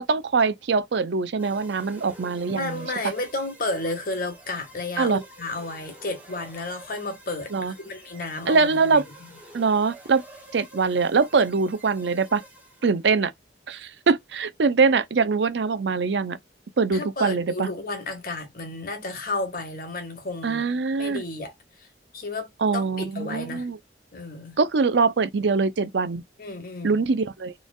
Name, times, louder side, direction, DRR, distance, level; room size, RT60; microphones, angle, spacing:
voice 1, 0.0-2.9 5.0-5.2 7.5-7.7 8.5-9.0 9.5-10.2 10.5-12.4 12.8-13.3 13.7-16.4 16.8-17.7 20.4-21.2 22.6-23.8 24.6-26.2 26.8-27.5, right 4 dB, 75° right, 0.5 m, -23 dB
sound 1, 1.4-13.1, right 1 dB, 10° right, 1.3 m, -48 dB
voice 2, 2.5-7.5 7.8-9.3 16.9-20.6 21.0-21.5 21.8-21.9 22.1-23.7 24.1-24.6 26.4-27.0, left 2 dB, 55° left, 1.6 m, -32 dB
4.2 x 3.3 x 2.3 m
head